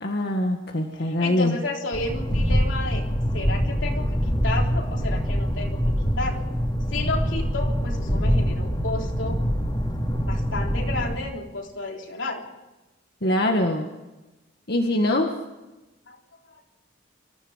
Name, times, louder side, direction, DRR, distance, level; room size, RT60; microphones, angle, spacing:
voice 1, 0.0-1.6 13.2-13.9 14.7-15.3, left 1 dB, 55° left, 2 dB, 1.8 m, -23 dB
voice 2, 1.0-3.1 3.3-5.8 6.2-6.4 6.9-9.4 10.2-12.4 16.1-16.2, left 2 dB, 85° left, 1 dB, 3.7 m, -32 dB
sound 1, 1.9-11.2, equal, 25° left, 3.1 m, -24 dB
25.0 x 14.5 x 7.4 m, 1.1 s
head